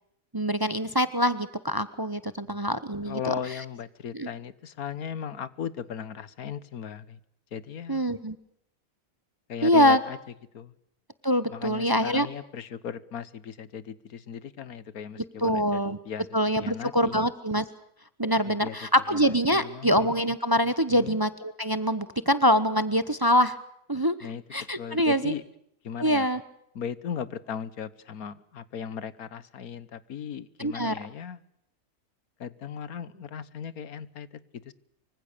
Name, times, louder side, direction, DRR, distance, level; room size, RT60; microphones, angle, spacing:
voice 1, 0.3-3.3 4.1-4.3 7.9-8.4 9.6-10.0 11.2-12.3 15.4-16.0 16.3-17.6 18.2-23.6 23.9-24.2 24.5-25.3 26.0-26.4 30.6-30.9, equal, 20° right, 13 dB, 0.8 m, -24 dB
voice 2, 3.0-7.2 7.5-8.0 9.5-10.2 10.5-10.7 11.5-16.3 16.6-17.3 18.5-18.7 19.1-20.1 20.9-21.2 24.2-24.4 24.8-25.4 25.8-26.3 26.7-31.4 32.4-34.7, left 8 dB, 85° left, 16 dB, 1.6 m, -37 dB
25.0 x 25.0 x 6.8 m, 0.73 s
omnidirectional pair, 1.5 m